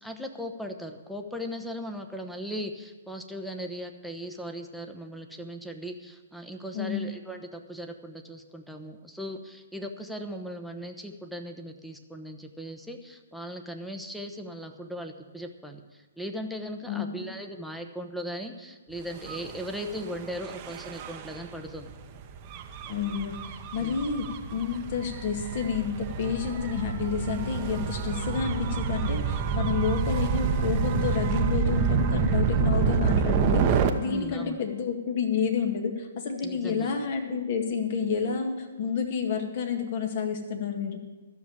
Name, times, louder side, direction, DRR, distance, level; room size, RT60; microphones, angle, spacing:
voice 1, 0.0-15.8 16.2-21.9 23.8-24.0 34.0-34.6 36.4-37.0, equal, ahead, 4 dB, 1.0 m, -38 dB
voice 2, 6.7-7.2 16.9-17.1 22.9-23.4 23.7-24.3 24.5-41.0, left 6 dB, 45° left, 4 dB, 1.9 m, -29 dB
Gull seagull / Waves surf / Siren, 19.2-33.9, right 6 dB, 30° right, 0.9 m, -28 dB
12.5 x 7.1 x 8.8 m, 1.2 s
figure-of-eight pair, 125°, 0 cm